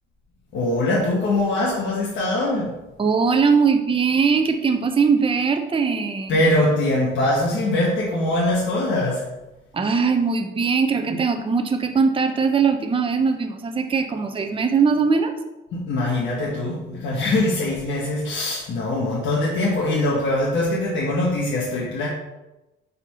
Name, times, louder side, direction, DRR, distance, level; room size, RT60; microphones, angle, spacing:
voice 1, 0.5-2.8 6.3-9.3 15.7-22.1, left 1 dB, 70° left, -5 dB, 1.3 m, -22 dB
voice 2, 3.0-6.3 9.7-15.3, right 5 dB, 25° right, 5 dB, 0.6 m, -20 dB
4.5 x 4.2 x 5.5 m, 1.0 s
cardioid pair, 90°, 20 cm